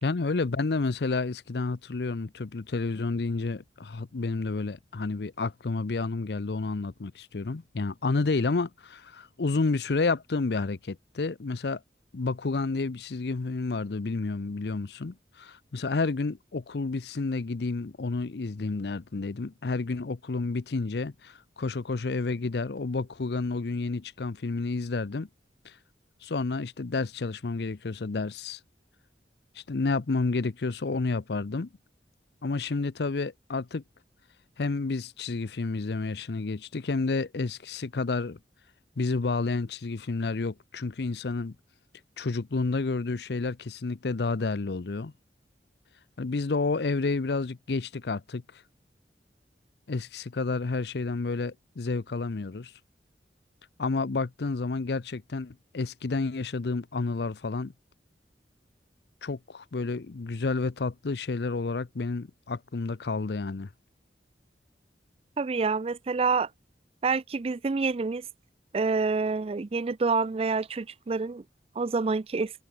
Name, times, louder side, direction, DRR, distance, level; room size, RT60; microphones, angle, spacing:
voice 1, 0.0-11.8 12.1-25.3 25.6-25.7 26.2-28.6 29.6-31.7 32.4-33.8 34.6-38.4 39.0-41.6 42.2-45.1 46.2-48.6 49.9-52.7 53.8-57.7 59.2-63.7, left 3 dB, 65° left, 0.6 m, -30 dB
voice 2, 65.4-66.5 67.0-68.2 68.7-71.4 71.8-72.5, right 4 dB, 35° right, 0.4 m, -27 dB
head